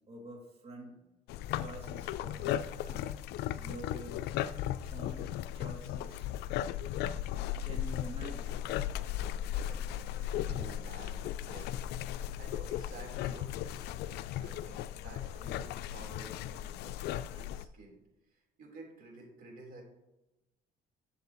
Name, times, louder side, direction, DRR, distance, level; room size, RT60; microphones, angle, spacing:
voice 1, 0.1-1.1 1.5-3.1 3.6-4.2 4.9-6.4 7.5-8.6, right 1 dB, 35° right, -2 dB, 2.4 m, -48 dB
sound 1, 1.3-17.7, left 11 dB, 80° left, 0.4 m, -36 dB
voice 2, 9.5-13.9 14.4-16.9 17.3-18.0 18.3-19.8, right 3 dB, 55° right, -1 dB, 3.6 m, -51 dB
11.5 x 7.4 x 3.0 m, 0.95 s
cardioid pair, 110°, 17 cm